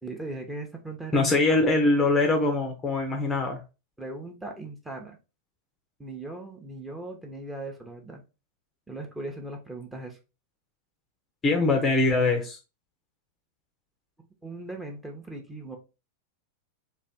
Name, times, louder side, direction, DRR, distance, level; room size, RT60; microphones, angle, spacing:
voice 1, 0.0-1.7 4.0-5.2 6.0-8.2 8.9-10.2 14.4-15.8, right 2 dB, 10° right, 0.9 m, -38 dB
voice 2, 1.1-3.6 11.4-12.6, left 2 dB, 20° left, 0.7 m, -23 dB
3.3 x 2.5 x 4.2 m
figure-of-eight pair, 90°, 0 cm